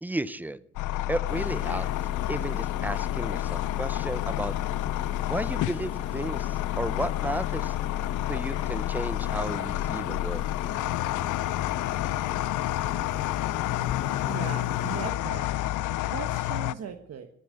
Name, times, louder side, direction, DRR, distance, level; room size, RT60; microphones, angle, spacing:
voice 1, 0.0-0.6 1.1-1.9 2.3-4.5 5.3-7.7 8.3-10.4, right 1 dB, 5° right, 17 dB, 0.6 m, -33 dB
sound 1, 0.8-16.7, left 15 dB, 80° left, 0.5 m, -30 dB
sound 2, 1.3-15.1, left 7 dB, 50° left, 1.2 m, -38 dB
voice 2, 14.2-15.4 16.1-17.3, right 7 dB, 55° right, 6 dB, 1.2 m, -38 dB
17.0 x 10.5 x 6.6 m, 0.69 s
cardioid pair, 90°, 30 cm